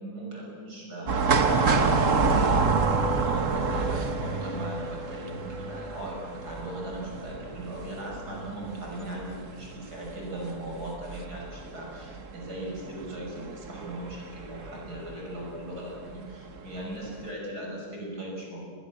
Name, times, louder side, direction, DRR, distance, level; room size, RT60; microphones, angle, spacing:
voice 1, 0.0-2.8 3.1-18.7, right 1 dB, 85° right, -2 dB, 7.1 m, -38 dB
sound 1, 1.1-15.1 15.4-15.5 16.5-16.8 17.2-17.3, right 4 dB, 55° right, 1.7 m, -28 dB
sound 2, 2.7-7.0, left 1 dB, 30° right, 7.2 m, -40 dB
29.0 x 21.5 x 7.5 m, 2.2 s
omnidirectional pair, 1.7 m